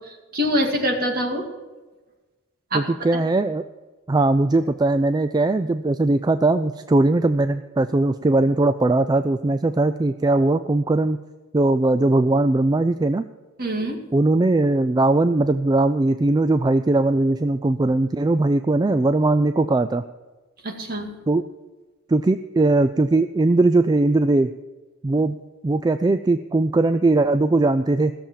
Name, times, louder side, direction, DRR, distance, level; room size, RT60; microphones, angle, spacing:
voice 1, 0.0-1.5 2.7-3.2 13.6-14.0 20.6-21.1, equal, 45° right, 2 dB, 2.2 m, -25 dB
voice 2, 2.7-3.6 4.1-11.2 11.5-13.3 14.1-20.0 21.3-21.5 22.1-24.5 25.0-25.4 25.6-28.1, right 2 dB, 20° right, 10 dB, 0.3 m, -19 dB
16.5 x 7.1 x 7.4 m, 1.2 s
head